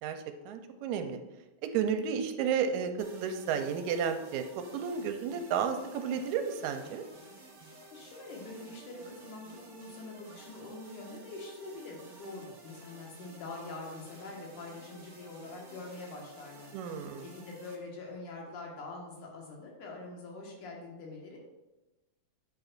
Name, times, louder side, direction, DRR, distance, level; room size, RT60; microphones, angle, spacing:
voice 1, 0.0-1.2 1.6-4.4 4.7-7.0 16.7-17.3, right 7 dB, 80° right, 7 dB, 1.9 m, -32 dB
sound 1, 3.0-17.8, right 2 dB, 45° right, 1.7 m, -53 dB
voice 2, 7.7-21.4, left 3 dB, 90° left, -1 dB, 3.1 m, -45 dB
9.1 x 7.8 x 2.5 m, 1.1 s
omnidirectional pair, 3.4 m